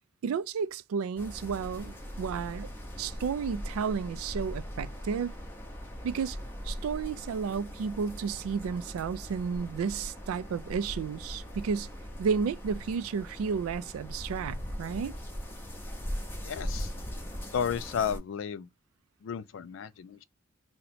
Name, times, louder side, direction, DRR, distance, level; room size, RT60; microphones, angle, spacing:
voice 1, 0.2-2.7 3.0-5.4 6.0-6.4 6.6-11.9 12.2-15.2, right 6 dB, 90° right, 0.3 m, -32 dB
sound 1, 1.2-18.2, equal, 10° left, 0.5 m, -40 dB
voice 2, 16.4-16.9 17.5-18.7 19.2-20.2, left 7 dB, 65° left, 0.3 m, -33 dB
2.8 x 2.1 x 4.0 m
head